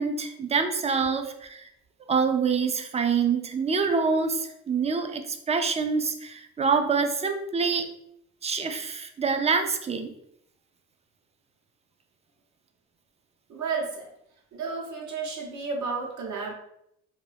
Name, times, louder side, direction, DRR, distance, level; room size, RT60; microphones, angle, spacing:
voice 1, 0.0-1.7 2.1-7.9 8.4-10.1, right 5 dB, 20° right, 7 dB, 0.4 m, -26 dB
voice 2, 13.5-14.1 14.5-16.5, right 4 dB, 70° right, -1 dB, 1.0 m, -32 dB
2.6 x 2.5 x 3.3 m, 0.77 s
cardioid pair, 90°, 30 cm